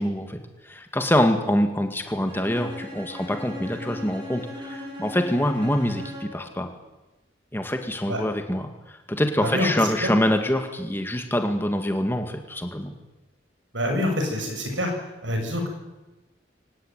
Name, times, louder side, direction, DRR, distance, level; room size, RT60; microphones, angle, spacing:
voice 1, 0.0-6.7 7.5-13.0, left 1 dB, 10° left, 5 dB, 2.0 m, -25 dB
Bowed string instrument, 2.3-6.5, left 1 dB, 25° right, 7.1 m, -38 dB
voice 2, 13.7-14.9 15.2-15.7, left 1 dB, 75° right, 3 dB, 7.3 m, -26 dB
24.5 x 19.0 x 9.2 m, 1.1 s
head